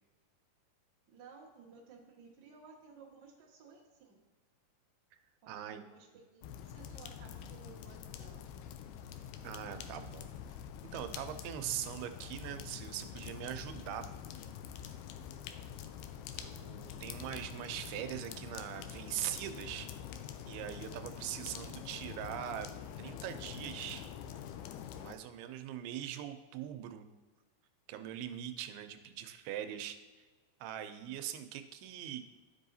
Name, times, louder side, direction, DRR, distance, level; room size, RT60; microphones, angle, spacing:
voice 1, 1.1-4.2 5.4-8.4, right 5 dB, 55° right, -4 dB, 1.2 m, -56 dB
voice 2, 5.5-5.8 9.4-10.3 10.9-14.1 16.4-19.9 20.4-22.7 23.0-24.1 24.9-27.1 27.9-30.0 30.6-32.2, right 11 dB, 85° right, 8 dB, 2.6 m, -41 dB
sound 1, 6.4-25.2, left 9 dB, 90° left, 2.6 m, -46 dB
12.5 x 5.5 x 2.7 m, 1.3 s
omnidirectional pair, 4.4 m